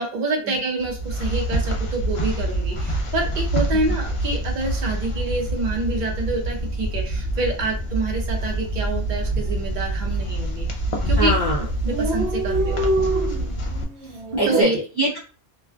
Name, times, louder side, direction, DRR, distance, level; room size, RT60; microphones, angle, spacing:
voice 1, 0.0-10.7 11.1-11.3 11.8-12.8 14.5-14.8, right 2 dB, 50° right, 1 dB, 0.8 m, -27 dB
sound 1, 0.8-13.8, right 1 dB, 60° left, 0.3 m, -26 dB
Dog, 8.4-8.7 9.0-9.1 9.3-10.0 10.6-10.9 11.2-11.3 11.4-11.5 11.7-14.6, right 1 dB, 85° right, 0.9 m, -26 dB
voice 2, 11.2-11.6 14.0-15.2, right 1 dB, 25° left, -3 dB, 0.8 m, -24 dB
2.4 x 2.1 x 2.4 m, 0.37 s
omnidirectional pair, 1.1 m